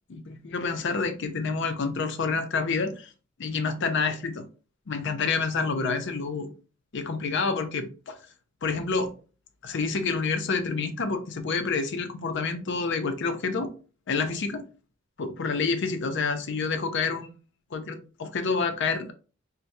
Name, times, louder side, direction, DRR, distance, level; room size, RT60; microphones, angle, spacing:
voice 1, 0.1-3.1 3.4-4.4 4.9-6.5 6.9-8.2 8.6-9.1 9.6-13.7 14.1-14.6 15.2-17.3 17.7-19.1, left 4 dB, 60° left, 0.6 m, -28 dB
4.5 x 2.2 x 2.6 m
head